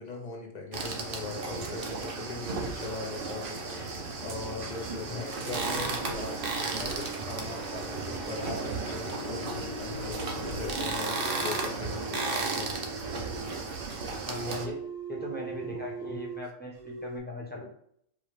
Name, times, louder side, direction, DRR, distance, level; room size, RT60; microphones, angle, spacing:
voice 1, 0.0-13.5, left 3 dB, 40° left, 1 dB, 0.7 m, -40 dB
sound 1, 0.7-14.7, right 3 dB, 50° right, 0.8 m, -34 dB
sound 2, 6.2-11.2 11.6-13.7 14.2-16.5 16.7-17.2, right 3 dB, 85° right, 2.2 m, -42 dB
voice 2, 14.3-14.8 15.1-17.7, left 2 dB, 10° left, -2 dB, 0.8 m, -38 dB
4.7 x 2.3 x 4.6 m, 0.68 s
omnidirectional pair, 1.4 m